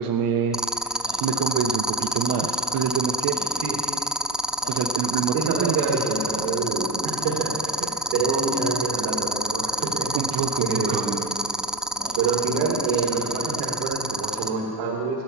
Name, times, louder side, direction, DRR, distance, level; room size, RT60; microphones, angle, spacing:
voice 1, 0.0-3.6 4.7-6.0 10.1-11.1, right 7 dB, 60° right, 4 dB, 0.8 m, -27 dB
sound 1, 0.5-14.5, equal, ahead, 0.3 m, -26 dB
Speech synthesizer, 1.0-1.3 2.1-2.6 3.3-3.6 4.5-5.0 5.9-6.3 7.2-7.5 8.4-8.7 9.7-9.9 10.8-11.0 11.9-12.3 13.1-13.5, left 2 dB, 65° left, 4.1 m, -43 dB
voice 2, 5.3-10.1 10.6-11.3 12.2-15.2, right 4 dB, 85° right, -3 dB, 1.8 m, -26 dB
15.0 x 10.5 x 7.1 m, 2.8 s
cardioid pair, 115°, 39 cm